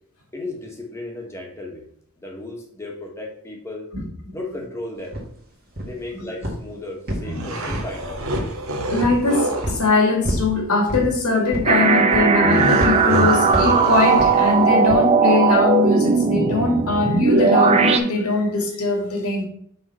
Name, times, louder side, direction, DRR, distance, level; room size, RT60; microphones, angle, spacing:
voice 1, 0.3-1.9 2.2-3.9 4.3-5.2 5.8-8.2, left 2 dB, 15° left, -1 dB, 1.4 m, -34 dB
voice 2, 3.9-4.4 6.1-6.3 8.9-19.5, left 3 dB, 85° left, 0 dB, 2.3 m, -21 dB
sound 1, 5.1-5.3 5.8-6.1 6.4-6.7 7.1-8.0 8.3-8.6 9.0-9.2 9.6-9.9 10.2-10.5 10.9-11.1 11.5-11.8 12.1-12.4 12.8-13.0 13.5-13.8 14.2-14.4 14.9-15.1, equal, 45° right, 2.0 m, -27 dB
sound 2, 7.2-9.8 12.4-14.7, right 1 dB, 65° right, 1.1 m, -27 dB
sound 3, 11.7-18.0, right 4 dB, 30° right, 0.5 m, -17 dB
5.7 x 3.8 x 5.6 m, 0.64 s
head